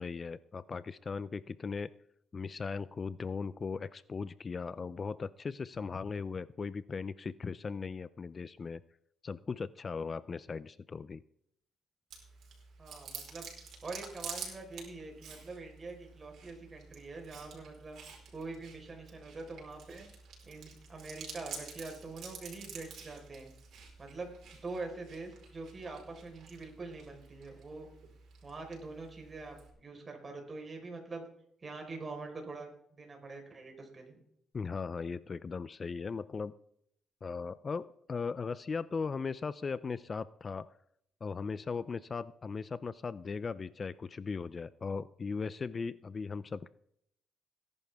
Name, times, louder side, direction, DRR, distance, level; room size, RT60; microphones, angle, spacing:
voice 1, 0.0-1.9 2.3-8.8 9.2-11.2 34.5-36.5 37.2-40.7 41.2-46.7, left 5 dB, 35° left, 17 dB, 0.5 m, -38 dB
Chewing mastication, 12.1-29.7, right 5 dB, 70° right, 4.6 m, -49 dB
voice 2, 12.8-13.5 13.8-18.0 18.3-20.1 20.5-23.5 24.0-27.9 28.4-31.2 31.6-34.2, right 3 dB, 35° right, 2 dB, 4.4 m, -44 dB
18.5 x 10.5 x 3.5 m, 0.71 s
cardioid pair, 90°, 0 cm